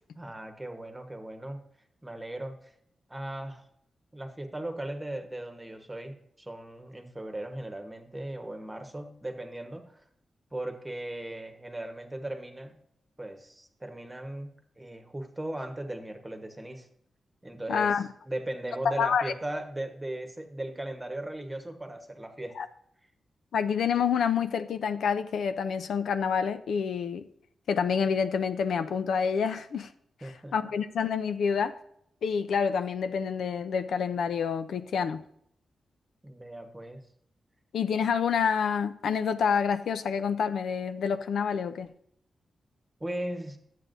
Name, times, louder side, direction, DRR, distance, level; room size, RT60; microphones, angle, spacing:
voice 1, 0.2-1.6 2.0-2.7 3.1-3.6 4.1-10.0 10.5-12.8 13.2-16.9 17.4-22.6 30.2-30.5 36.2-37.0 43.0-43.6, right 1 dB, 10° right, 1.2 m, -38 dB
voice 2, 17.7-18.1 18.8-19.3 22.6-22.7 23.5-27.3 27.7-29.9 30.5-31.8 32.2-35.2 37.7-41.9, left 6 dB, 90° left, 0.5 m, -28 dB
12.0 x 8.3 x 2.6 m
wide cardioid pair, 135°, 0 cm